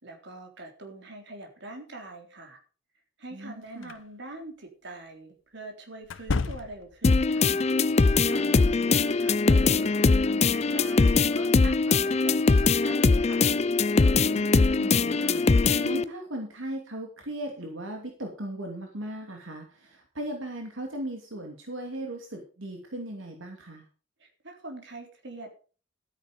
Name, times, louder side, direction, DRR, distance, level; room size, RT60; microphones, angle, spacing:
voice 1, 0.0-2.6 3.2-7.6 8.3-13.5 24.2-25.5, right 2 dB, 65° right, 3 dB, 3.8 m, -44 dB
voice 2, 3.3-3.9 8.4-9.0 14.2-23.9, right 1 dB, 85° right, 2 dB, 2.6 m, -38 dB
sound 1, 3.8-4.0 6.0-7.1, left 3 dB, 75° left, 0.7 m, -31 dB
sound 2, 7.0-16.0, left 4 dB, 35° left, 0.5 m, -22 dB
13.0 x 9.6 x 5.2 m, 0.38 s
head